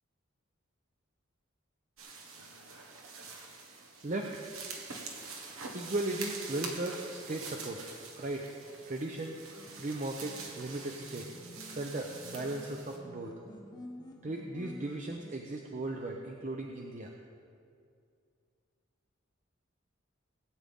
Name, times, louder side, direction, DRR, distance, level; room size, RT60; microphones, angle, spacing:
sound 1, 2.0-13.0, right 4 dB, 80° right, 1.4 m, -45 dB
voice 1, 3.6-4.4 5.7-7.9 8.2-8.5 8.9-9.4 9.8-11.3 11.7-13.3 14.2-17.1, right 2 dB, 35° right, 1 dB, 0.7 m, -37 dB
sound 2, 9.6-15.3, left 1 dB, 20° left, 1.0 m, -49 dB
19.0 x 9.0 x 3.6 m, 2.4 s
head